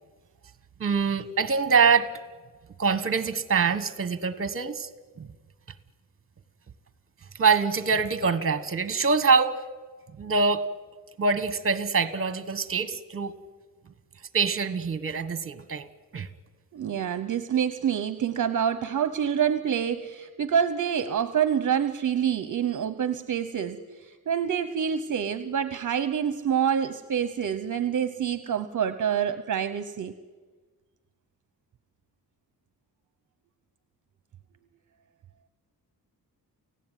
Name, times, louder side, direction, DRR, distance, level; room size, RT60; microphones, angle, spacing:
voice 1, 0.8-2.1 2.8-4.9 5.2-5.3 7.4-9.6 10.2-10.6 11.2-13.3 14.3-15.9 16.1-16.3, right 5 dB, 35° right, 13 dB, 1.5 m, -24 dB
voice 2, 16.7-30.1, right 8 dB, 55° right, 12 dB, 0.9 m, -27 dB
29.5 x 16.5 x 9.3 m, 1.4 s
wide cardioid pair, 140°, 37 cm